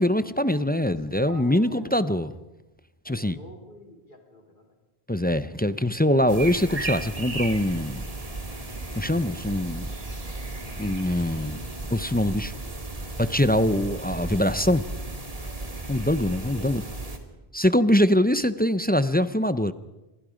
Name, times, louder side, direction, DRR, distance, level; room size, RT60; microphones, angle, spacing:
voice 1, 0.0-2.3 3.1-3.4 5.1-8.0 9.0-9.9 10.8-11.6 11.9-12.5 13.2-14.8 15.9-16.8 17.5-19.7, left 1 dB, 10° left, 0.5 m, -23 dB
voice 2, 0.8-2.0 3.0-4.7 12.5-12.8 16.5-17.4, left 1 dB, 50° left, 3.7 m, -47 dB
sound 1, 6.3-17.2, right 2 dB, 35° right, 2.2 m, -35 dB
27.0 x 22.0 x 5.1 m
omnidirectional pair, 1.1 m